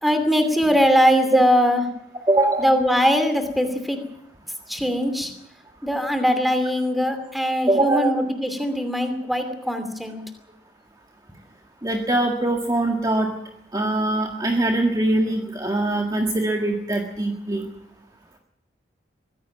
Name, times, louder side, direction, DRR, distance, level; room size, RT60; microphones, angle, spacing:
voice 1, 0.0-1.8 2.6-4.0 4.7-5.3 5.8-10.2, equal, ahead, 8 dB, 2.6 m, -21 dB
voice 2, 2.3-2.7 7.7-8.1 11.8-13.3 13.7-17.7, right 2 dB, 20° right, 2 dB, 1.7 m, -22 dB
23.5 x 15.5 x 7.3 m, 0.76 s
head